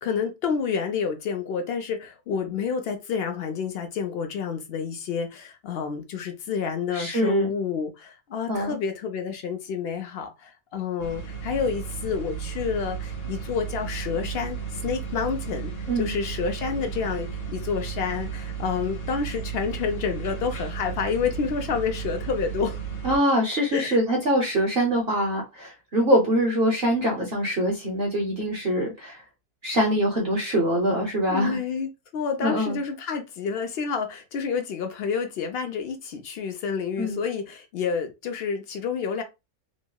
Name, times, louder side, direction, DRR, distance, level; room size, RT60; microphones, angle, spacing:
voice 1, 0.0-15.7 16.0-22.8 23.7-24.0 31.3-39.2, left 6 dB, 70° left, 0.5 m, -29 dB
voice 2, 6.9-7.5 8.5-8.8 15.9-16.1 23.0-29.2 29.6-31.6 32.4-32.8 37.0-37.2, equal, 50° right, 0.8 m, -24 dB
sound 1, 11.0-23.2, right 7 dB, 50° left, 1.5 m, -34 dB
3.0 x 2.7 x 2.2 m
omnidirectional pair, 1.6 m